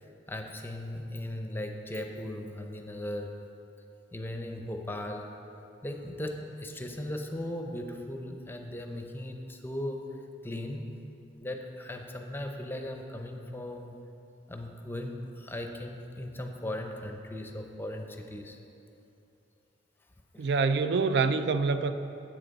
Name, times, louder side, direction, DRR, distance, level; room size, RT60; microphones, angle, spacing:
voice 1, 0.3-3.4 4.1-5.3 5.8-10.1 10.4-10.9 11.4-14.0 14.5-18.6 20.3-20.5, left 1 dB, 15° left, 4 dB, 0.6 m, -38 dB
voice 2, 20.4-21.9, right 4 dB, 65° right, 11 dB, 0.4 m, -26 dB
10.5 x 8.1 x 4.0 m, 2.8 s
head